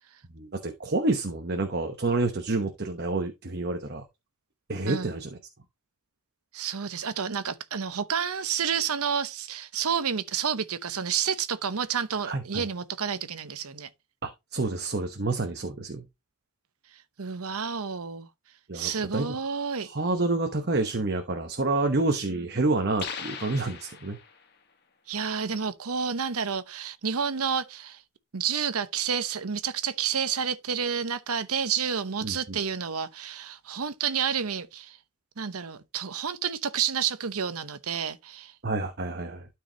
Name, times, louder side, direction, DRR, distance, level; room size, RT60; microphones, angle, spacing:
voice 1, 0.3-4.0 4.7-5.4 12.2-12.6 14.2-16.1 18.7-19.4 19.8-24.2 32.2-32.6 38.6-39.5, right 2 dB, 50° right, 1.0 m, -28 dB
voice 2, 4.8-5.1 6.5-13.9 17.2-18.3 18.7-19.9 25.1-28.0 28.3-35.0 35.4-38.5, right 7 dB, 85° right, 0.9 m, -30 dB
sound 1, 23.0-24.5, left 6 dB, 50° left, 1.4 m, -39 dB
12.5 x 4.7 x 2.9 m
head